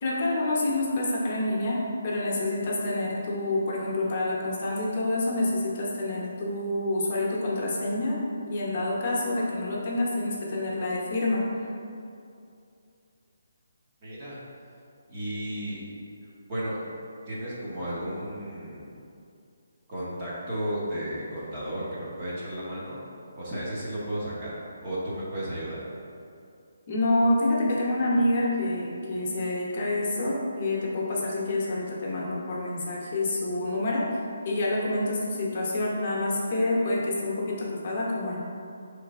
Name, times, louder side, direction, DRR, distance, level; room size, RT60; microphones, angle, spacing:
voice 1, 0.0-8.2 8.4-11.4 26.9-34.1 34.4-38.4, left 2 dB, 35° left, -4 dB, 0.8 m, -27 dB
voice 2, 14.0-14.4 15.1-15.8 16.5-16.8 17.3-19.0 19.9-23.0 23.3-24.5 24.8-25.8, right 1 dB, 25° right, -8 dB, 0.8 m, -33 dB
4.3 x 3.2 x 3.5 m, 2.5 s
hypercardioid pair, 170°, 0 cm